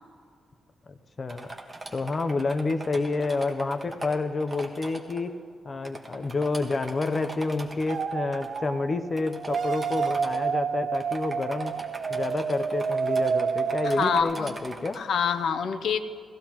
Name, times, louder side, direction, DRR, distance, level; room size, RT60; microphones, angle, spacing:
voice 1, 1.2-1.5 1.9-5.4 5.6-11.7 12.1-15.0, left 3 dB, 30° left, 9 dB, 0.6 m, -29 dB
sound 1, 1.3-5.2 5.8-8.6 9.2-10.4 10.9-15.0, right 2 dB, 20° right, 1.3 m, -41 dB
sound 2, 7.9-9.0 9.3-14.2, right 6 dB, 55° right, 0.6 m, -29 dB
voice 2, 13.8-14.5 14.9-16.0, left 7 dB, 75° left, 9 dB, 0.6 m, -26 dB
18.0 x 15.0 x 2.9 m, 2.2 s
wide cardioid pair, 145°, 0 cm